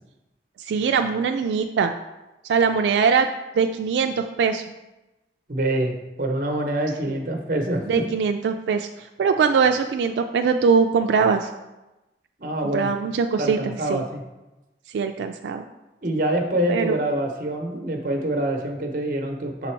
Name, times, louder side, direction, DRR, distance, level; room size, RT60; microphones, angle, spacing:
voice 1, 0.6-1.9 2.4-3.3 3.6-4.6 7.1-7.2 7.9-11.5 12.7-14.1 14.9-15.7 16.7-17.0, right 5 dB, 85° right, 5 dB, 0.3 m, -22 dB
voice 2, 5.5-8.0 12.4-12.9 13.4-14.2 16.0-19.7, right 1 dB, 50° right, 3 dB, 0.8 m, -25 dB
6.1 x 4.0 x 4.5 m, 1.0 s
head